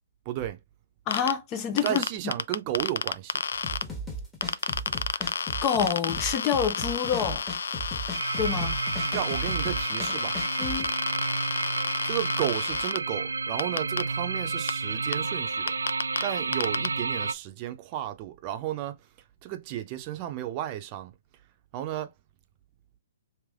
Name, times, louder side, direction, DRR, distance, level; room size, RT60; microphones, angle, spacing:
voice 1, 0.2-0.6 1.8-3.4 9.1-10.4 12.0-15.8 16.2-19.1 19.4-21.1 21.7-22.1, right 12 dB, 35° right, 0.7 m, -33 dB
sound 1, 1.1-1.3 1.8-3.8 4.4-13.0 13.6-14.0 14.7-14.8 15.1-15.2 15.7-16.2 16.5-16.9, left 5 dB, 75° left, 0.4 m, -30 dB
voice 2, 1.1-2.0 5.2-5.3 5.6-7.4 8.4-8.8 10.6-10.9, left 7 dB, 25° left, 0.7 m, -27 dB
sound 2, 3.6-10.9, equal, 10° left, 1.3 m, -37 dB
sound 3, 8.1-17.3, right 4 dB, 85° right, 0.3 m, -31 dB
3.3 x 3.0 x 3.5 m
hypercardioid pair, 135°, 0 cm